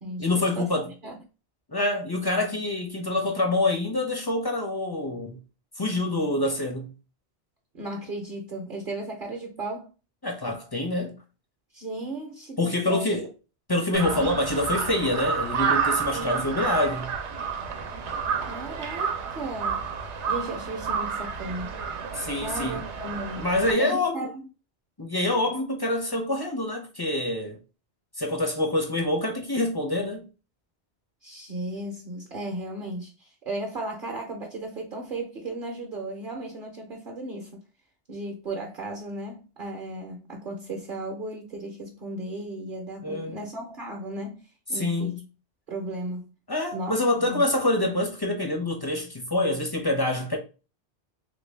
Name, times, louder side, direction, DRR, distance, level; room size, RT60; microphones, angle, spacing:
voice 1, 0.2-0.9 1.7-5.4 5.8-6.9 10.2-11.2 12.6-13.3 13.7-17.1 22.1-22.8 23.4-24.3 25.0-27.6 28.2-30.2 43.0-43.4 44.7-45.2 46.5-50.4, left 2 dB, 35° left, 0.4 m, -26 dB
voice 2, 7.7-9.9 11.7-13.1 14.1-14.3 16.1-16.6 18.4-19.9 20.3-21.7 22.4-23.5 23.8-24.5 31.2-37.6 38.1-44.4 44.7-45.2 45.7-46.2 46.7-47.4, right 2 dB, 55° right, 0.8 m, -35 dB
Crow, 13.9-23.7, right 6 dB, 85° right, 1.0 m, -30 dB
3.1 x 2.6 x 3.2 m
omnidirectional pair, 1.2 m